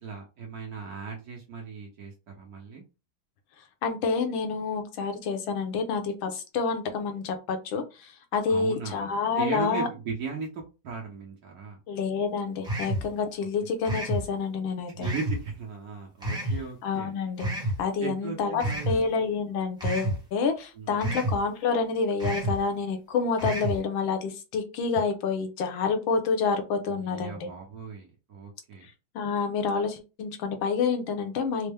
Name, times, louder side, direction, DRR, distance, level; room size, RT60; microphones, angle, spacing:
voice 1, 0.0-2.8 8.5-9.1 9.4-11.8 14.9-17.1 18.0-19.2 20.8-21.0 26.9-28.9, right 5 dB, 60° right, 0 dB, 1.1 m, -37 dB
voice 2, 3.8-9.9 11.9-15.1 16.8-17.5 17.8-27.5 29.1-31.7, left 5 dB, 75° left, 6 dB, 1.5 m, -28 dB
sound 1, 12.6-13.1 13.8-14.2 15.0-15.4 16.2-16.6 17.4-17.8 18.6-19.0 19.8-20.2 21.0-21.4 22.2-22.6 23.4-23.8, right 1 dB, 5° right, 0.3 m, -29 dB
4.3 x 2.0 x 3.4 m, 0.30 s
omnidirectional pair, 2.2 m